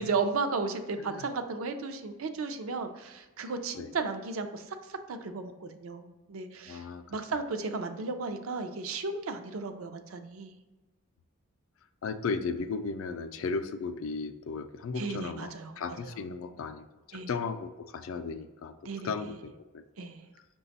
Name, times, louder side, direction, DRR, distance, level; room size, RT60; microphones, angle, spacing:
voice 1, 0.0-6.8 7.1-10.6 15.0-16.1 17.1-17.3 18.8-19.3 20.0-20.2, right 4 dB, 80° right, 8 dB, 0.5 m, -34 dB
voice 2, 6.7-7.2 12.0-18.7 19.0-20.1, left 4 dB, 70° left, 10 dB, 0.4 m, -36 dB
5.7 x 2.3 x 4.0 m, 1.2 s
head